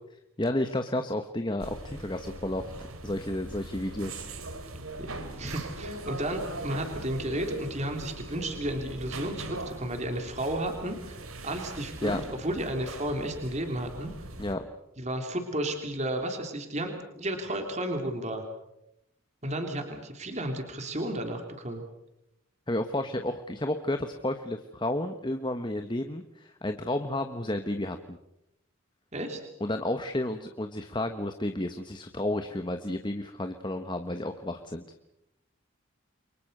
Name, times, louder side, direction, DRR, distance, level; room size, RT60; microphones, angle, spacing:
voice 1, 0.4-2.7 3.0-4.6 12.0-12.2 14.4-14.7 22.7-28.2 29.6-34.8, left 1 dB, 20° left, 6 dB, 1.2 m, -31 dB
sound 1, 1.6-14.5, right 2 dB, 90° right, 3.3 m, -40 dB
voice 2, 5.0-14.1 15.0-18.4 19.4-21.8 29.1-29.4, right 1 dB, 35° right, 4 dB, 3.3 m, -33 dB
29.5 x 24.0 x 6.7 m, 0.85 s
head